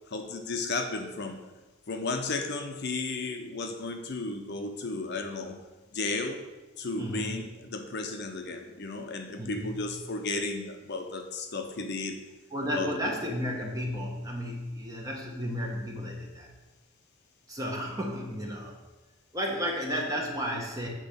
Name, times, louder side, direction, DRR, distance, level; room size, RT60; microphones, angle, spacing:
voice 1, 0.1-1.4 1.9-5.6 5.9-6.4 6.8-12.2 12.7-12.9, left 3 dB, 50° left, 5 dB, 0.6 m, -34 dB
voice 2, 7.0-7.4 9.4-9.9 12.5-16.5 17.5-18.8 19.3-20.9, equal, 15° right, 0 dB, 1.0 m, -33 dB
7.6 x 3.8 x 6.6 m, 1.2 s
head